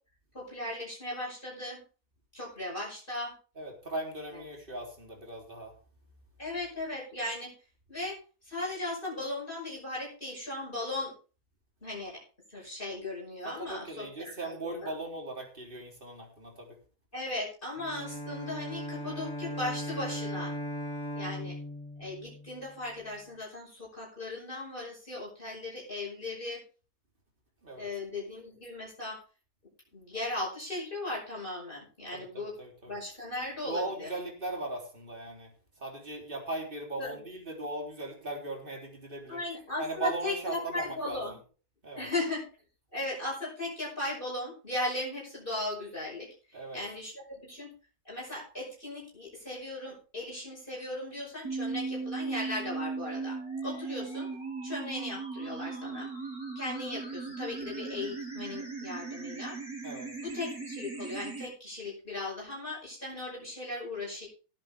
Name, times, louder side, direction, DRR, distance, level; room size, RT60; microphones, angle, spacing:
voice 1, 0.3-1.8 2.3-3.3 4.3-4.4 6.4-7.5 7.9-11.1 11.8-12.2 12.5-15.0 17.1-20.5 21.1-21.6 22.0-26.6 27.8-29.2 29.9-32.5 32.8-34.1 37.0-37.2 39.3-41.3 42.0-42.4 42.9-47.7 48.0-54.3 54.6-56.1 56.6-59.6 60.2-64.3, left 2 dB, 30° left, -4 dB, 5.9 m, -37 dB
voice 2, 3.6-5.7 13.4-16.8 27.6-27.9 32.1-33.0 33.7-35.5 35.8-39.4 39.8-41.2 41.8-42.1 46.5-46.8 59.8-60.1, right 2 dB, 30° right, 0 dB, 3.8 m, -38 dB
Bowed string instrument, 17.8-23.0, equal, 70° left, 3.9 m, -38 dB
sound 1, 51.4-61.5, right 4 dB, 70° right, 5.5 m, -38 dB
18.0 x 8.7 x 3.6 m, 0.36 s
omnidirectional pair, 1.7 m